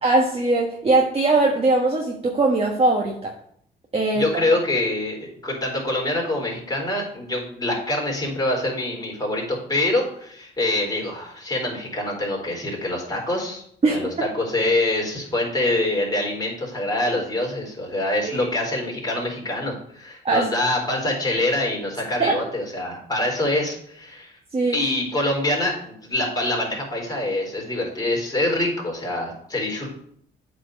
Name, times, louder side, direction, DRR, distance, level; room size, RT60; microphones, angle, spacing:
voice 1, 0.0-3.3 3.9-4.4 13.8-14.0 18.2-18.5 20.2-20.5 22.2-22.4 24.5-24.8, right 2 dB, 30° right, 0 dB, 1.4 m, -20 dB
voice 2, 4.1-13.6 13.9-24.3 24.7-29.9, left 1 dB, 20° left, -2 dB, 4.1 m, -25 dB
8.5 x 4.5 x 6.5 m, 0.66 s
cardioid pair, 90°, 20 cm